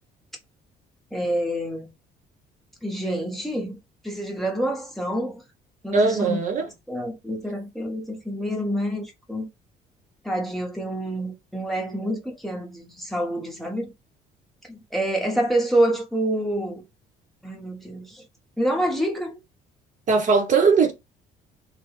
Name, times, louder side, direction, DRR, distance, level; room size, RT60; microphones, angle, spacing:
voice 1, 1.1-1.9 2.8-3.8 4.0-5.4 5.8-6.4 6.9-9.5 10.2-13.9 14.7-16.8 17.4-18.2 18.6-19.4, right 1 dB, ahead, 1.0 m, -27 dB
voice 2, 5.9-6.7 20.1-20.9, right 4 dB, 50° right, 1.0 m, -19 dB
3.3 x 2.3 x 3.1 m
cardioid pair, 110°, 17 cm